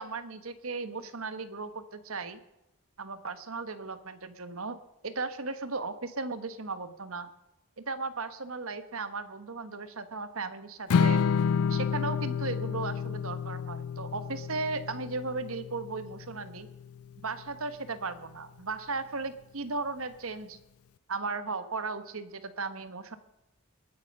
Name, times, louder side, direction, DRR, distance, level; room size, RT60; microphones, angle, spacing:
voice 1, 0.0-2.4 3.0-4.8 5.0-7.3 7.8-11.2 11.7-16.7 17.2-20.6 21.1-23.2, right 3 dB, 75° right, 11 dB, 1.2 m, -36 dB
Strum, 10.9-17.2, left 6 dB, 85° left, 0.4 m, -30 dB
21.5 x 9.0 x 5.3 m, 0.97 s
head